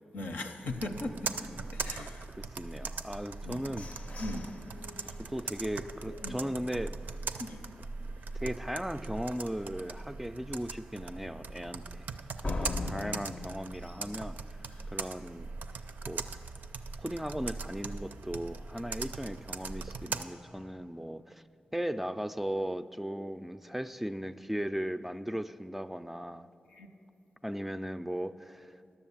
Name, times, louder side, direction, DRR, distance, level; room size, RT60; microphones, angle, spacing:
voice 1, 0.1-2.3 2.8-2.9 3.4-3.8 4.2-4.5 6.2-6.3 7.4-7.6 26.7-26.9, left 2 dB, 80° left, 5 dB, 0.7 m, -39 dB
Computer keyboard, 0.7-20.2, right 4 dB, 80° right, 0.4 m, -40 dB
voice 2, 2.0-3.9 5.3-7.0 8.4-12.1 12.4-14.4 14.9-15.5 16.1-16.3 17.0-21.4 21.7-26.5 27.4-28.8, equal, 5° right, 10 dB, 0.3 m, -37 dB
sound 1, 3.1-7.0 7.5-7.6 8.0-8.4 8.7-8.8 9.3-9.4 12.4-15.1, left 2 dB, 45° left, 0.5 m, -41 dB
11.0 x 7.0 x 7.2 m, 2.8 s
cardioid pair, 45°, 3 cm